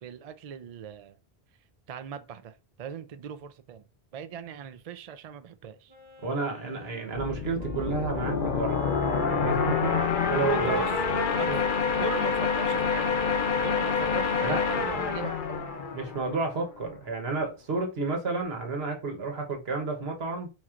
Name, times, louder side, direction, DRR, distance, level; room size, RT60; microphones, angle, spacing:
voice 1, 0.0-1.2 1.9-3.8 4.1-5.9 10.5-10.9 11.4-11.5 12.0-13.2 13.6-15.7, right 7 dB, 55° right, 0.4 m, -39 dB
Wind instrument woodwind instrument, 5.9-14.8, equal, 20° right, 1.2 m, -47 dB
voice 2, 6.2-8.8 9.2-10.8 11.5-11.6 14.4-14.6 15.9-20.5, right 3 dB, 75° right, 1.3 m, -31 dB
sound 1, 7.1-16.7, left 5 dB, 55° left, 0.8 m, -27 dB
4.4 x 4.3 x 2.4 m
omnidirectional pair, 1.1 m